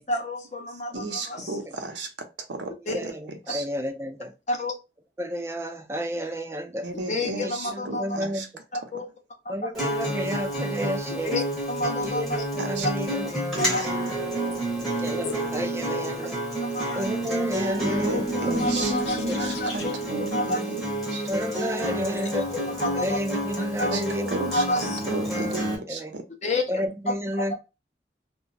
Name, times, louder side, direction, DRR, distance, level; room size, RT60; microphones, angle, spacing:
voice 1, 0.1-1.6 2.9-3.0 4.5-4.7 6.9-8.2 8.9-9.1 9.4-9.7 11.1-12.4 13.6-13.9 15.2-15.3 16.6-17.2 18.0-19.9 20.3-20.6 22.3-23.2 23.6-25.2 26.4-26.8 27.5-27.6, left 2 dB, 40° left, 3 dB, 0.5 m, -30 dB
voice 2, 0.9-2.1 2.5-3.1 3.5-3.6 6.8-8.5 12.6-12.9 13.5-13.7 18.0-20.8 21.1-21.3 23.9-24.0 24.3-24.6 25.1-26.2, right 3 dB, 90° right, 5 dB, 0.6 m, -34 dB
voice 3, 2.9-4.3 5.2-6.9 7.4-8.5 9.5-11.4 12.0-13.3 14.8-16.4 16.9-18.3 19.3-19.4 21.3-22.5 22.9-24.4 25.4-26.1 26.7-27.5, equal, 15° right, 5 dB, 0.3 m, -31 dB
Acoustic guitar, 9.7-25.8, right 1 dB, ahead, 0.7 m, -29 dB
sound 1, 17.4-20.2, equal, 90° left, 0.9 m, -33 dB
2.2 x 2.0 x 3.8 m, 0.27 s
head